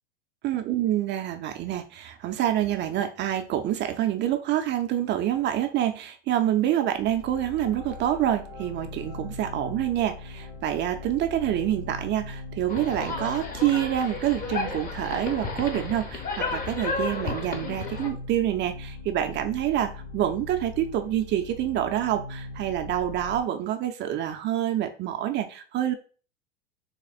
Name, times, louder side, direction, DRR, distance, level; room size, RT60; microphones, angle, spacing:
voice 1, 0.4-25.9, right 11 dB, 35° right, 7 dB, 0.5 m, -27 dB
sound 1, 6.9-23.4, left 3 dB, 55° left, 1.4 m, -40 dB
sound 2, 12.7-18.1, left 4 dB, 25° left, 0.9 m, -33 dB
3.6 x 2.4 x 4.0 m, 0.38 s
hypercardioid pair, 105°, 33 cm